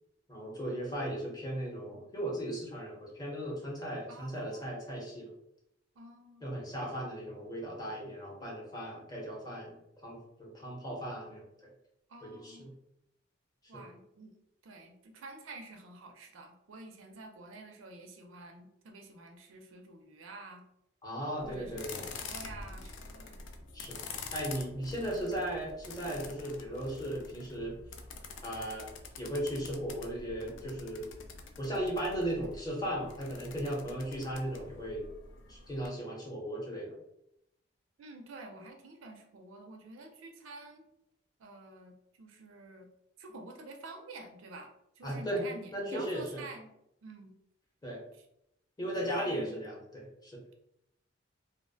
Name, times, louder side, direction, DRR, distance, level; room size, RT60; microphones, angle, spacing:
voice 1, 0.3-5.3 6.4-11.7 12.2-12.7 13.7-13.9 21.0-22.0 23.7-24.0 24.3-27.7 28.4-28.9 29.2-31.1 31.6-35.1 35.5-37.0 45.0-45.5 45.7-46.4 47.8-48.0 48.8-50.4, right 1 dB, 20° left, -3 dB, 0.7 m, -37 dB
voice 2, 4.1-4.7 6.0-6.5 12.1-12.7 13.7-14.4 14.6-20.6 21.2-23.4 38.0-40.8 41.4-42.9 43.2-46.7 47.0-47.3 49.0-49.6, right 2 dB, 90° right, 4 dB, 0.4 m, -49 dB
sound 1, 21.4-35.9, left 4 dB, 70° left, 0.3 m, -47 dB
2.3 x 2.0 x 2.6 m, 0.81 s
head